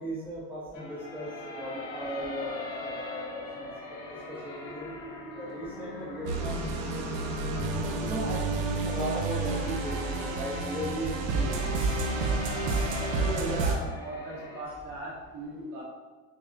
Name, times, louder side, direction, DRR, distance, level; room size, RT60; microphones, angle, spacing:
voice 1, 0.0-3.7 4.3-4.9 5.3-6.9 8.0-11.7, right 1 dB, 5° right, -7 dB, 0.7 m, -37 dB
sound 1, 0.7-14.6, left 2 dB, 85° left, 1.2 m, -40 dB
sound 2, 6.3-13.8, right 3 dB, 80° right, 0.7 m, -30 dB
voice 2, 13.1-15.8, right 1 dB, 50° right, -4 dB, 1.2 m, -37 dB
6.2 x 2.1 x 2.5 m, 1.3 s
cardioid pair, 140°, 39 cm